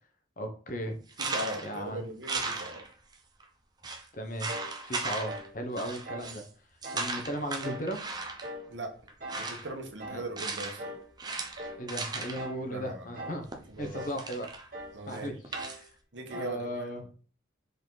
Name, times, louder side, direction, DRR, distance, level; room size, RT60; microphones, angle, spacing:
voice 1, 0.4-1.0 1.6-2.0 4.1-4.5 4.8-6.4 6.9-8.0 10.1-10.2 11.8-13.5 13.8-14.5 15.1-15.3 15.6-15.8 16.3-17.0, equal, 45° left, 6 dB, 1.0 m, -36 dB
sound 1, 1.1-1.8 2.2-3.1 3.4-3.5 3.8-4.0 4.4-5.5 5.8-6.5 6.8-8.5 9.1-9.7 10.4-10.9 11.2-12.5 13.5-14.7 15.1-15.8, right 3 dB, 20° right, 0.8 m, -36 dB
voice 2, 1.2-2.8 8.7-8.9 9.4-10.9 12.6-13.3 13.7-14.1 14.9-15.4 16.1-16.9, right 1 dB, 75° right, 4 dB, 1.3 m, -39 dB
sound 2, 4.5-4.8 5.2-5.5 6.0-6.3 6.8-7.1 7.6-7.9 8.4-8.7 9.2-9.5 10.0-10.3 10.8-11.1 11.6-11.9 12.4-12.7 13.1-13.5 13.9-14.2 14.7-15.0 15.5-15.8 16.3-16.6, right 1 dB, 50° right, 1.8 m, -41 dB
5.2 x 4.7 x 4.0 m, 0.41 s
head